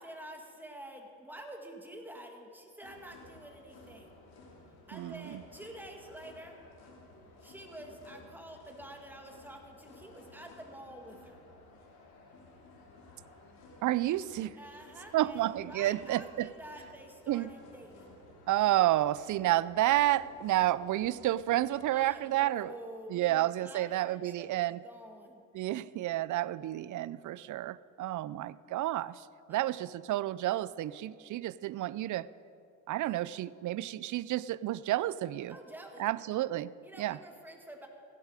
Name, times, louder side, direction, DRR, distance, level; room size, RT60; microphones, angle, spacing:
voice 1, 0.0-4.1 4.9-6.6 7.4-11.4 14.6-18.2 21.9-25.4 29.5-29.6 35.5-36.2 36.8-37.9, right 1 dB, 5° right, 2 dB, 2.0 m, -48 dB
sound 1, 2.8-22.0, left 2 dB, 65° left, 2.9 m, -56 dB
voice 2, 4.9-5.4 13.8-14.6 15.1-16.5 17.3-17.5 18.5-22.7 23.1-24.8 25.5-32.3 32.9-35.6 36.0-36.7 37.0-37.2, right 14 dB, 50° right, 19 dB, 0.5 m, -30 dB
16.0 x 11.5 x 5.0 m, 2.5 s
cardioid pair, 85°, 39 cm